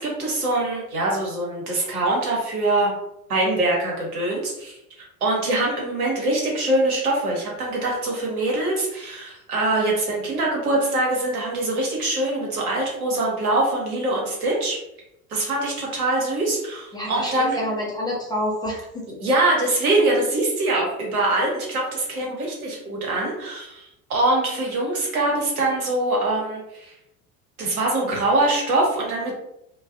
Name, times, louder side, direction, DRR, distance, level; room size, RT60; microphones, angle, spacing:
voice 1, 0.0-2.9 3.3-4.8 5.2-14.8 15.3-17.6 19.2-26.9 27.6-29.3, right 2 dB, 80° right, -2 dB, 1.0 m, -23 dB
voice 2, 16.9-19.0, left 1 dB, 10° left, -4 dB, 0.3 m, -28 dB
2.3 x 2.2 x 2.4 m, 0.85 s
hypercardioid pair, 75°, 43 cm